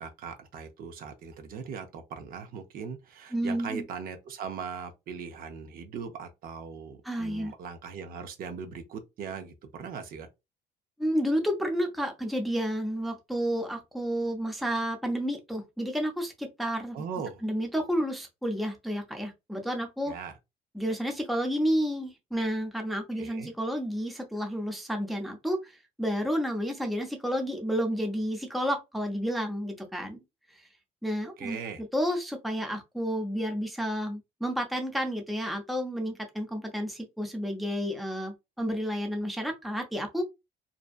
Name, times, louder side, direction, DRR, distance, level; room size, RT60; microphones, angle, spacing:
voice 1, 0.0-10.3 16.9-17.4 20.1-20.3 23.2-23.5 31.4-31.8, right 6 dB, 60° right, 0.6 m, -39 dB
voice 2, 3.3-3.8 7.0-7.5 11.0-17.0 17.4-20.1 20.7-30.2 31.0-40.2, equal, ahead, 0.5 m, -31 dB
2.6 x 2.1 x 2.4 m
cardioid pair, 110°, 17 cm